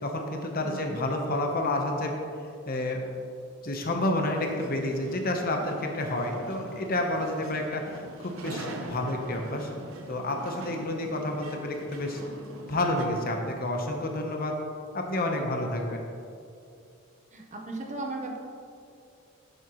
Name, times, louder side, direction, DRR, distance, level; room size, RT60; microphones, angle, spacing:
voice 1, 0.0-2.2 2.7-3.1 3.6-9.7 10.1-12.2 12.7-14.6 14.9-16.0, left 1 dB, 40° left, 2 dB, 1.0 m, -29 dB
voice 2, 0.6-1.0 17.3-18.4, right 2 dB, 35° right, 2 dB, 0.9 m, -37 dB
sound 1, 4.3-13.2, right 1 dB, 65° right, 0.9 m, -43 dB
11.0 x 7.9 x 3.1 m, 2.5 s
head